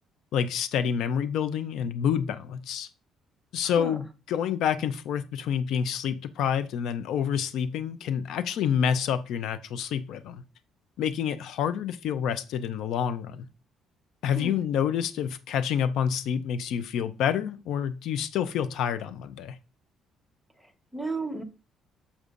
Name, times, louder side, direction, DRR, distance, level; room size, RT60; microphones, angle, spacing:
voice 1, 0.3-2.9 3.5-10.4 11.0-13.5 14.2-19.6, left 8 dB, 70° left, 0.5 m, -28 dB
voice 2, 3.6-4.0 14.3-14.7 20.6-21.4, right 3 dB, ahead, 1.0 m, -35 dB
7.1 x 6.6 x 2.5 m
cardioid pair, 135°, 0 cm